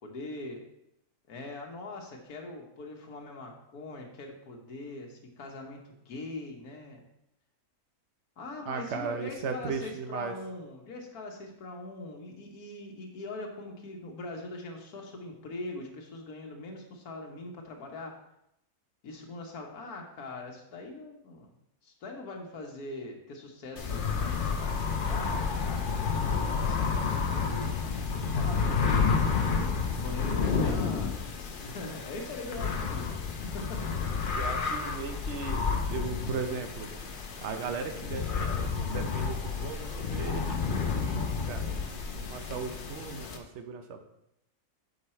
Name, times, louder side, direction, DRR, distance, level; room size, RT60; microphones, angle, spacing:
voice 1, 0.0-0.6 1.3-7.0 8.4-18.2 19.0-21.5 21.8-25.9 26.3-29.0 29.9-33.9, left 2 dB, 85° left, 1 dB, 1.6 m, -42 dB
voice 2, 8.7-10.3 34.3-36.9 37.4-44.0, right 5 dB, 55° right, 6 dB, 1.0 m, -37 dB
sound 1, 23.8-43.4, left 5 dB, 50° left, 0.7 m, -30 dB
6.6 x 4.9 x 4.3 m, 0.81 s
omnidirectional pair, 1.6 m